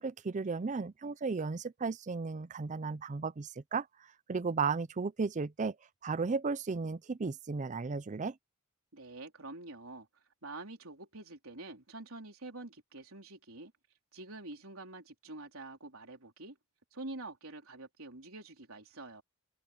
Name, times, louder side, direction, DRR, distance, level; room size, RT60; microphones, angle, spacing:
voice 1, 0.0-3.9 4.3-5.8 6.0-8.4, right 4 dB, 35° right, 0.5 m, -34 dB
voice 2, 8.9-10.1 10.4-13.7 14.1-16.6 16.9-19.2, right 2 dB, 70° right, 4.2 m, -46 dB
head